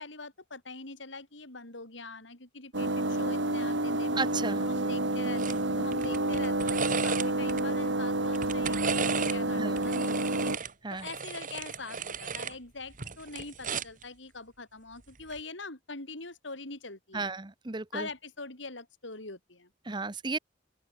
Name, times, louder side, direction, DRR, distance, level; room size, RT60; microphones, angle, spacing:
voice 1, 0.0-4.1 4.6-10.3 10.9-17.3 17.9-19.7, left 3 dB, 80° left, 4.9 m, -43 dB
sound 1, 2.7-10.6, right 1 dB, 80° right, 4.4 m, -29 dB
voice 2, 4.2-4.6 9.6-9.8 10.8-11.1 17.1-18.1 19.9-20.4, right 3 dB, 25° right, 0.9 m, -34 dB
sound 2, 5.4-5.6 5.9-7.6 8.2-9.4 9.8-12.6 12.9-14.0 15.2-15.4, right 5 dB, 45° right, 2.9 m, -35 dB
open air
head